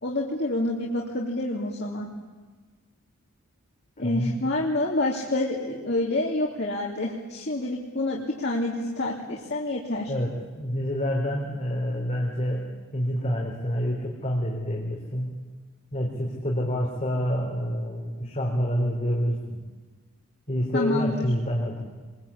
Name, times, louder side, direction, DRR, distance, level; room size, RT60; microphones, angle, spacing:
voice 1, 0.0-2.1 4.0-10.1 20.7-21.2, left 1 dB, 50° left, -2 dB, 2.8 m, -28 dB
voice 2, 4.0-4.5 10.1-15.4 15.9-19.6 20.5-21.9, equal, 30° left, -2 dB, 3.9 m, -28 dB
26.5 x 22.0 x 8.7 m, 1.4 s
head